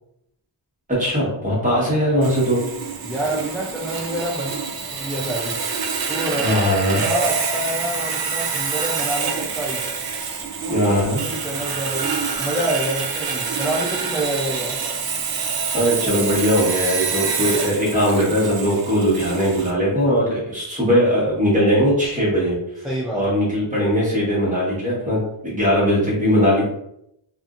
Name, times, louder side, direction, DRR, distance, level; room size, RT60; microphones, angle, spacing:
voice 1, 1.0-2.6 6.4-7.0 10.7-11.2 15.7-22.5 23.1-25.2 25.4-26.6, equal, 15° right, -7 dB, 1.3 m, -19 dB
Sawing, 2.2-19.7, right 5 dB, 55° right, 0.5 m, -26 dB
voice 2, 3.0-4.6 4.9-5.6 6.1-9.8 10.6-10.9 11.1-14.8 22.8-23.2, right 1 dB, ahead, -5 dB, 0.3 m, -27 dB
2.7 x 2.5 x 2.4 m, 0.78 s
wide cardioid pair, 120°, 45 cm